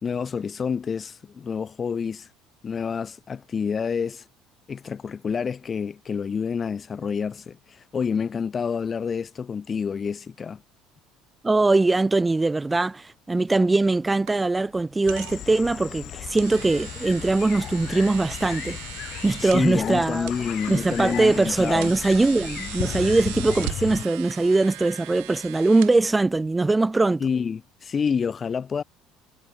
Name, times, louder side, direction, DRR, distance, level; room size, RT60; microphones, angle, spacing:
voice 1, 0.0-2.3 2.6-4.2 4.7-10.6 19.4-21.9 27.2-28.8, left 6 dB, 25° left, 0.7 m, -28 dB
voice 2, 11.4-18.8 19.2-20.3 20.7-27.3, right 3 dB, 10° right, 0.9 m, -21 dB
sound 1, 13.3-26.6, right 40 dB or more, 90° right, 5.5 m, -40 dB
sound 2, 15.1-24.0, left 12 dB, 50° left, 1.0 m, -35 dB
cardioid pair, 130°, 0 cm